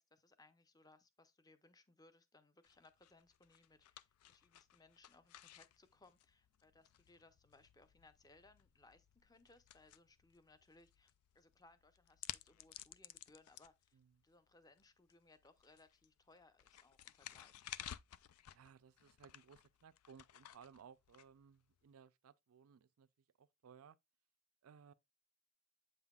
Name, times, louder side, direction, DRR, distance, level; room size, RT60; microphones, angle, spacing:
voice 1, 0.0-14.0 14.2-17.7, left 2 dB, 15° left, 0.6 m, -67 dB
sound 1, 2.6-21.9, left 12 dB, 90° left, 0.4 m, -56 dB
voice 2, 13.9-14.2 18.5-23.1 23.4-24.0 24.6-24.9, right 7 dB, 75° right, 0.4 m, -61 dB
8.0 x 5.5 x 2.3 m
head